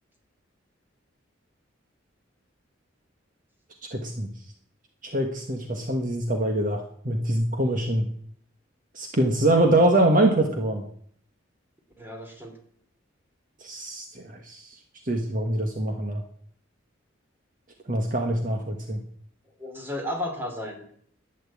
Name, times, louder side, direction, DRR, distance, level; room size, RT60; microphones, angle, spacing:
voice 1, 3.9-4.3 5.0-8.1 8.9-10.8 13.6-14.7 15.0-16.2 17.9-19.0, right 1 dB, 40° right, 4 dB, 1.5 m, -24 dB
voice 2, 12.0-12.5 19.6-20.9, left 1 dB, 10° right, 3 dB, 2.9 m, -33 dB
12.0 x 9.4 x 8.5 m, 0.62 s
head